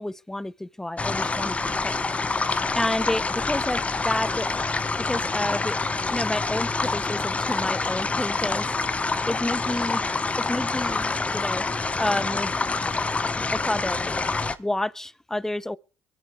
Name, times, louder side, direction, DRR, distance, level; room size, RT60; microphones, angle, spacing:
voice 1, 0.0-2.3 2.7-4.5 5.1-5.8 6.1-8.7 9.3-10.0 10.4-11.6 12.0-12.5 13.5-14.0 14.6-15.8, left 1 dB, 10° left, 0.6 m, -29 dB
sound 1, 1.0-14.6, left 3 dB, 25° left, 0.9 m, -27 dB
23.5 x 8.8 x 3.6 m
supercardioid pair, 65°, 5 cm